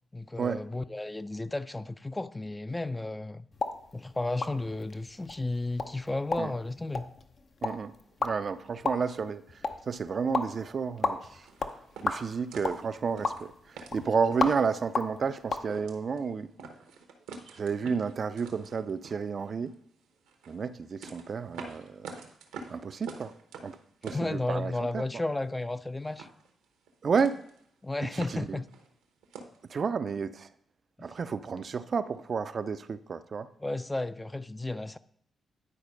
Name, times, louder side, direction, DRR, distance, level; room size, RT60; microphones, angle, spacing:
voice 1, 0.1-3.5 3.9-7.1 24.1-26.3 27.8-28.6 31.0-31.1 33.6-35.0, left 2 dB, 20° left, 0.4 m, -33 dB
sound 1, 3.5-15.7, left 4 dB, 55° left, 0.7 m, -36 dB
voice 2, 7.6-7.9 8.2-11.5 12.0-16.5 17.6-19.7 20.5-22.3 22.7-23.3 23.6-23.8 24.0-25.0 27.0-27.4 28.1-28.6 29.7-30.5 31.0-33.5, right 5 dB, 55° right, 0.5 m, -31 dB
sound 2, 11.5-14.8 15.2-15.3 15.6-16.3 16.6-19.8 20.2-25.0 25.2-25.8 26.1-26.9 27.1-27.6 27.9-29.6, right 5 dB, 85° right, 1.0 m, -46 dB
9.9 x 4.2 x 5.1 m
supercardioid pair, 45°, 0 cm